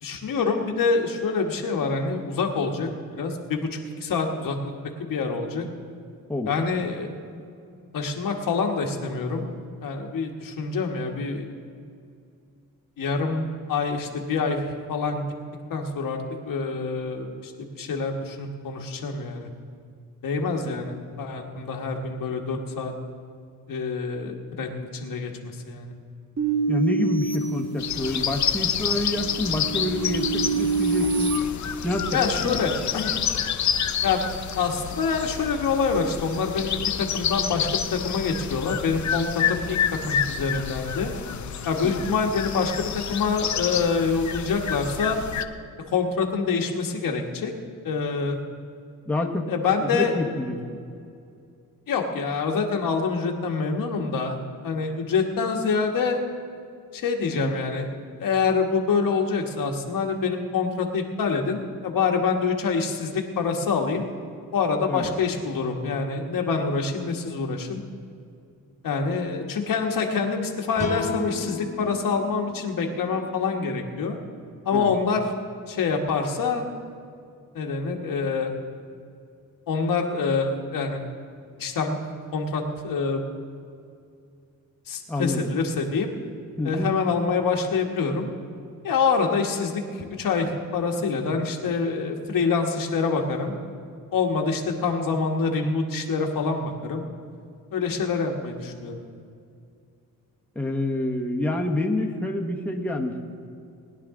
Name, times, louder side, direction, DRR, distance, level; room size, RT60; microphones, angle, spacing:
voice 1, 0.0-2.9 3.2-3.7 4.0-4.6 5.0-5.6 6.5-7.1 7.9-9.4 9.8-11.5 13.0-15.3 15.7-16.2 16.5-17.5 17.8-19.5 20.2-22.9 23.7-25.9 32.1-33.1 34.0-34.2 34.6-39.8 40.1-41.1 41.6-45.2 45.9-47.5 47.8-48.4 49.5-50.1 51.9-54.4 54.6-56.2 56.9-57.9 58.2-64.0 64.5-67.8 68.8-74.2 74.6-75.2 75.7-76.7 77.5-78.5 79.7-81.0 81.6-82.0 82.3-83.2 84.9-86.1 86.6-88.3 88.8-93.6 94.1-97.0 97.7-98.9, left 4 dB, 75° left, 2 dB, 1.4 m, -26 dB
sound 1, 26.4-28.3 28.8-31.4, right 3 dB, 50° right, 1.8 m, -27 dB
voice 2, 26.7-31.4 31.8-32.6 41.8-41.9 49.1-49.5 49.8-50.6 57.3-57.5 64.9-65.1 74.7-74.9 85.1-85.5 86.6-86.9 100.5-103.3, left 1 dB, 5° left, 1 dB, 1.2 m, -27 dB
sound 2, 27.8-45.4, left 8 dB, 55° left, 0.7 m, -29 dB
sound 3, 70.8-74.1, left 3 dB, 20° left, 1.5 m, -34 dB
20.5 x 10.5 x 3.7 m, 2.4 s
cardioid pair, 100°, 34 cm